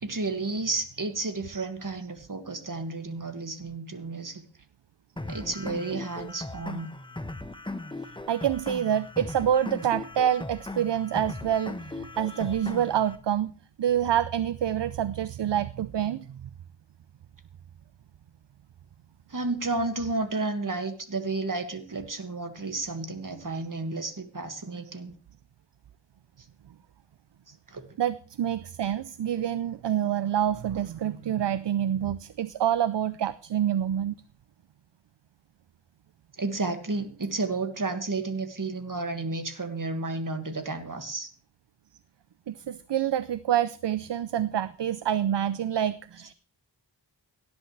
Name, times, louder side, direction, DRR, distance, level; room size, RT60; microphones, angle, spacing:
voice 1, 0.0-4.4 5.3-6.9 19.3-25.1 27.7-27.8 36.4-41.3, right 3 dB, 45° right, 7 dB, 2.1 m, -32 dB
sound 1, 5.2-13.2, left 2 dB, 10° left, 1.1 m, -38 dB
voice 2, 8.3-13.5 13.8-16.5 28.0-34.1 42.5-46.3, right 10 dB, 65° right, 16 dB, 0.6 m, -27 dB
17.5 x 10.5 x 3.3 m, 0.41 s
wide cardioid pair, 55°, 45 cm